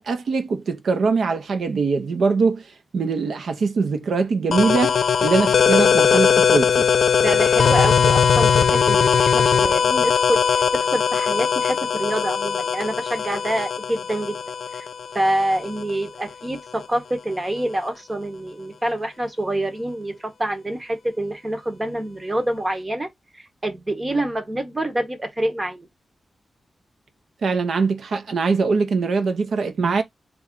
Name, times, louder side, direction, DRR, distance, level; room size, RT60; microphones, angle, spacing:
voice 1, 0.0-2.6 2.9-6.9 27.4-30.0, right 4 dB, 75° right, 0.6 m, -22 dB
sound 1, 4.5-15.9, left 7 dB, 75° left, 0.3 m, -19 dB
voice 2, 7.2-10.6 10.9-14.4 14.7-14.9 15.1-23.1 23.3-25.9, right 1 dB, 20° right, 0.8 m, -26 dB
3.2 x 2.3 x 3.6 m
wide cardioid pair, 140°, 0 cm